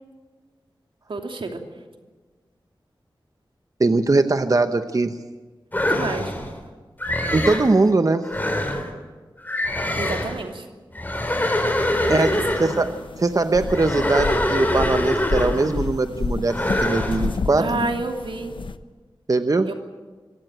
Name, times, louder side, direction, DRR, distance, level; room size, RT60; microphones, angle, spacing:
voice 1, 1.1-1.6 5.8-6.3 10.0-10.7 12.2-12.4 16.7-16.9 17.6-18.5 19.7-19.8, right 3 dB, 80° right, 4 dB, 2.8 m, -29 dB
voice 2, 3.8-5.2 7.3-8.3 12.1-17.7 19.3-19.7, right 3 dB, 40° right, 9 dB, 1.0 m, -21 dB
sound 1, 5.7-6.5 7.0-7.7 8.2-8.9 9.4-10.4 10.9-12.9 13.6-15.8 16.5-17.3, left 1 dB, 20° left, 3.9 m, -24 dB
sound 2, 11.8-18.8, left 4 dB, 75° left, 1.0 m, -31 dB
25.0 x 16.0 x 9.0 m, 1.4 s
wide cardioid pair, 70°, 9 cm